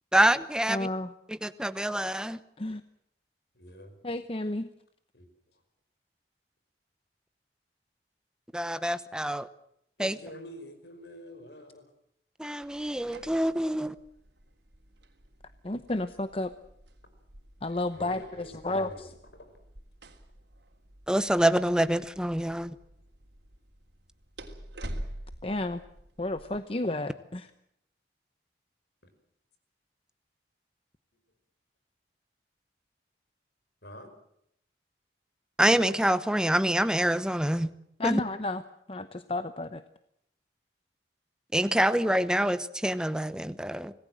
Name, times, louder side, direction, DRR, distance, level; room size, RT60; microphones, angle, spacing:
voice 1, 0.1-0.9 1.3-2.4 8.5-9.5 10.0-10.1 12.4-13.9 21.1-22.7 35.6-37.7 38.0-38.2 41.5-43.9, right 1 dB, 5° right, 13 dB, 0.9 m, -26 dB
voice 2, 0.7-1.1 2.6-2.8 4.0-4.7 15.6-16.5 17.6-18.9 25.4-25.8 26.2-27.5 38.0-38.6 38.9-39.8, left 2 dB, 30° left, 11 dB, 0.8 m, -31 dB
voice 3, 3.5-4.0 5.1-5.3 10.0-11.9 17.9-19.6 33.8-34.1, equal, 75° left, 8 dB, 5.6 m, -46 dB
sound 1, 12.6-26.6, right 1 dB, 80° right, 3.4 m, -47 dB
26.0 x 19.0 x 7.6 m, 0.75 s
head